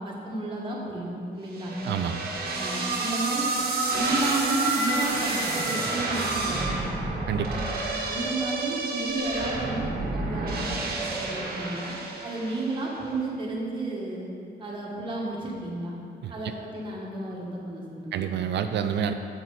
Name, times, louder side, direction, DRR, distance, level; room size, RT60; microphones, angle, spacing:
voice 1, 0.0-1.7 2.6-3.5 3.9-6.7 7.5-7.7 8.0-9.8 10.1-11.9 12.2-14.3 14.6-15.9 16.3-18.3, right 2 dB, 25° right, -4 dB, 1.8 m, -32 dB
sound 1, 1.6-12.8, right 3 dB, 55° right, 1.5 m, -29 dB
voice 2, 1.8-2.3 7.3-7.6 16.2-16.5 18.1-19.1, right 8 dB, 75° right, 8 dB, 0.5 m, -28 dB
9.1 x 8.6 x 4.2 m, 2.5 s
wide cardioid pair, 170°, 18 cm